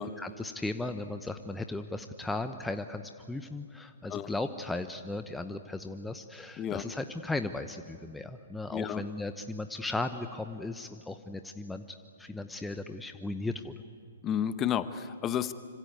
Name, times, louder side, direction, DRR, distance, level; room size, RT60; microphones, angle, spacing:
voice 1, 0.0-13.8, left 2 dB, 5° left, 8 dB, 1.0 m, -36 dB
voice 2, 8.7-9.0 14.2-15.5, left 9 dB, 25° left, 13 dB, 1.1 m, -31 dB
26.0 x 26.0 x 8.4 m, 2.2 s
figure-of-eight pair, 120°, 0 cm